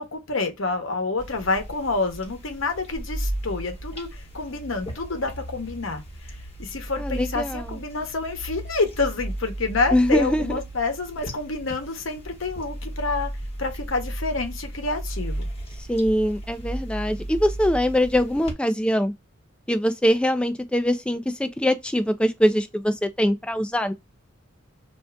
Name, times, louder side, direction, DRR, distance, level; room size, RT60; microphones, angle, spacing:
voice 1, 0.0-13.3 13.6-15.5, left 3 dB, 70° left, 0.9 m, -28 dB
sound 1, 1.2-18.5, right 1 dB, 30° left, 1.2 m, -35 dB
voice 2, 7.0-7.8 9.9-10.6 15.8-19.1 19.7-23.9, equal, 5° left, 0.3 m, -23 dB
2.6 x 2.4 x 3.3 m
head